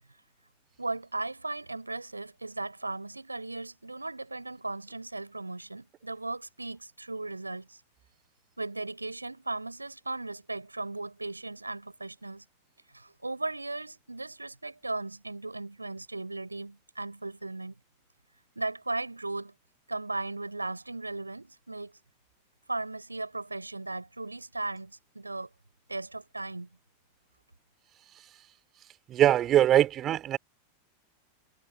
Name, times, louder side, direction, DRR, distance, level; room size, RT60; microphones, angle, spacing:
voice 1, 0.8-7.8 8.6-12.4 12.9-17.7 18.6-19.5 19.9-21.9 22.7-25.5 25.9-26.7, right 2 dB, 85° right, 6.4 m, -37 dB
voice 2, 29.1-30.4, right 12 dB, 30° right, 5.1 m, -22 dB
figure-of-eight pair, 90°, 0 cm